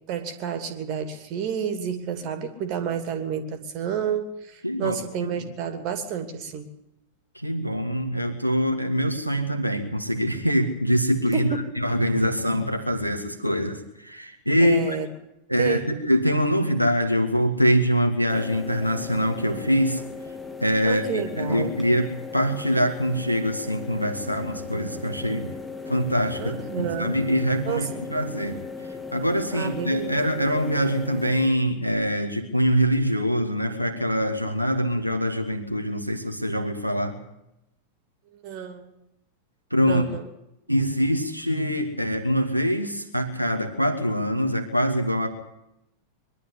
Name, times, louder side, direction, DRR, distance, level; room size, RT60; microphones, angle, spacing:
voice 1, 0.1-6.7 11.3-11.8 14.6-15.1 15.6-15.9 20.8-21.7 26.4-27.1 27.6-28.0 29.5-30.1 38.4-38.9 39.9-40.3, right 7 dB, 40° right, 8 dB, 2.8 m, -30 dB
voice 2, 4.6-4.9 5.2-5.5 7.3-15.0 15.5-20.0 20.6-25.5 25.9-37.2 39.7-40.1 40.7-45.3, equal, 90° right, 3 dB, 2.0 m, -24 dB
sound 1, 18.3-31.5, left 4 dB, 10° left, 2.7 m, -37 dB
22.5 x 12.0 x 9.8 m, 0.85 s
figure-of-eight pair, 90°, 0 cm